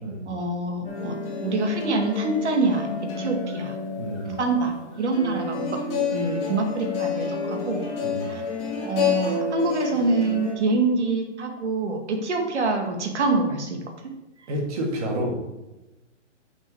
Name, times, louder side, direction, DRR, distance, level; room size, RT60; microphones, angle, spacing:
voice 1, 0.3-1.2 1.4-2.9 3.2-3.7 4.2-5.7 6.1-7.9 8.3-8.4 8.8-13.8, right 3 dB, 70° right, 3 dB, 2.2 m, -25 dB
sound 1, 0.8-10.5, left 4 dB, 15° left, 2.9 m, -29 dB
voice 2, 4.0-4.3 8.0-8.3 14.5-15.3, right 1 dB, 30° right, 0 dB, 2.0 m, -29 dB
8.2 x 7.1 x 4.9 m, 1.0 s
hypercardioid pair, 165°, 36 cm